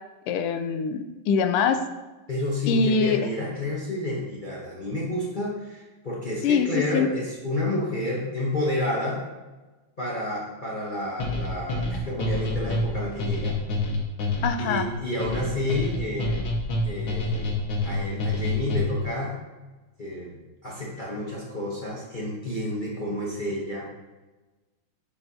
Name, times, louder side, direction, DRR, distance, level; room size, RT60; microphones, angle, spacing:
voice 1, 0.3-1.8 2.7-3.2 6.4-7.1 14.4-14.9, left 5 dB, 90° left, 8 dB, 1.5 m, -23 dB
voice 2, 2.3-9.2 10.0-13.6 14.6-16.5 16.8-17.6 17.8-19.4 20.0-20.3 20.6-23.9, left 1 dB, 40° left, -5 dB, 0.6 m, -30 dB
sound 1, 11.2-19.1, left 2 dB, 70° left, 1.9 m, -27 dB
9.7 x 4.6 x 2.7 m, 1.2 s
omnidirectional pair, 2.4 m